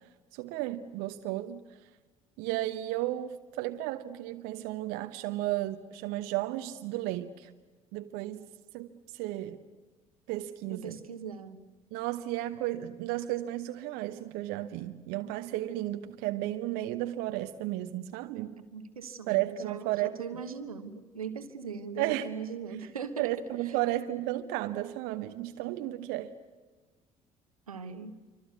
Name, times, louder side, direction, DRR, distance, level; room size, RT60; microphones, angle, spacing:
voice 1, 0.3-1.6 2.4-7.5 7.9-8.5 8.7-9.6 10.3-11.0 11.9-18.5 19.3-20.4 22.0-22.3 23.2-26.3, right 15 dB, 60° right, 1.0 m, -33 dB
voice 2, 10.7-11.6 18.7-23.3 27.7-28.2, right 6 dB, 80° right, 1.2 m, -40 dB
27.5 x 25.0 x 8.3 m
figure-of-eight pair, 55°, 18 cm